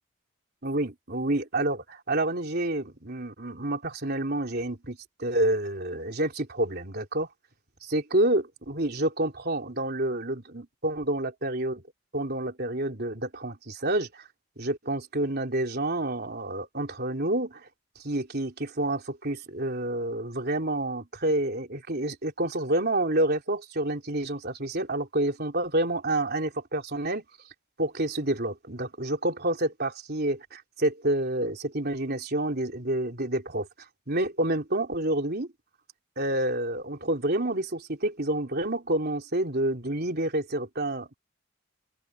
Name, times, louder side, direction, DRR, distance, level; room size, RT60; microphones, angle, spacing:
voice 1, 0.6-7.3 7.8-11.8 12.1-14.2 14.6-17.7 18.0-27.2 27.8-33.7 34.1-35.5 36.2-41.1, right 1 dB, 45° right, 3.5 m, -28 dB
head